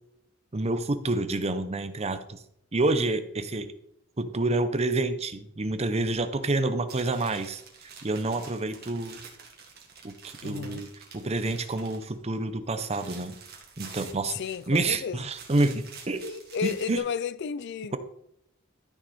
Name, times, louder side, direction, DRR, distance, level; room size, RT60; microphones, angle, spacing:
voice 1, 0.5-2.4 2.7-3.7 4.2-7.6 8.0-9.2 10.0-13.4 13.8-14.4 14.7-16.2 16.6-17.0, right 2 dB, 30° right, 0.8 m, -28 dB
sound 1, 6.9-12.2 12.5-14.9 15.2-17.0, right 5 dB, 55° right, 2.0 m, -47 dB
voice 2, 10.4-10.8 14.3-15.2 16.2-18.0, left 7 dB, 60° left, 0.4 m, -33 dB
12.5 x 6.2 x 4.3 m
head